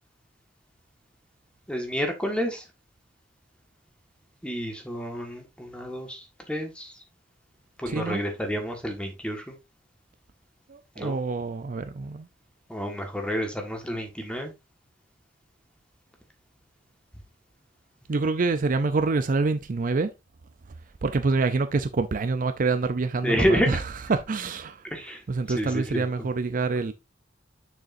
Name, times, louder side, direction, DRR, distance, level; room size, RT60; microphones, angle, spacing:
voice 1, 1.7-2.6 4.4-6.9 7.8-9.5 11.0-11.2 12.7-14.5 23.2-23.7 24.9-25.2 25.5-26.0, equal, 5° left, 1.6 m, -29 dB
voice 2, 7.9-8.2 10.7-12.3 18.1-20.1 21.0-23.8 24.1-24.8 25.3-26.9, right 3 dB, 45° right, 0.5 m, -26 dB
6.6 x 6.5 x 2.6 m
head